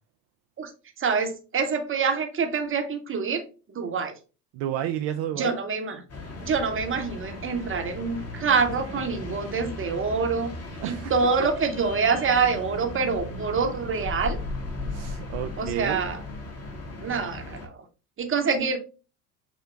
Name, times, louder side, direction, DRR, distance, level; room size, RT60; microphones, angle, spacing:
voice 1, 1.0-3.4 3.7-4.1 5.4-6.0 6.4-10.5 10.8-14.4 15.6-16.2 17.0-17.7 18.2-18.8, right 5 dB, 25° right, 1.0 m, -26 dB
voice 2, 4.5-5.6 10.8-11.1 14.9-16.0, right 11 dB, 60° right, 0.6 m, -31 dB
sound 1, 6.1-17.7, left 2 dB, 30° left, 1.4 m, -36 dB
6.1 x 2.2 x 3.2 m
hypercardioid pair, 75°, 49 cm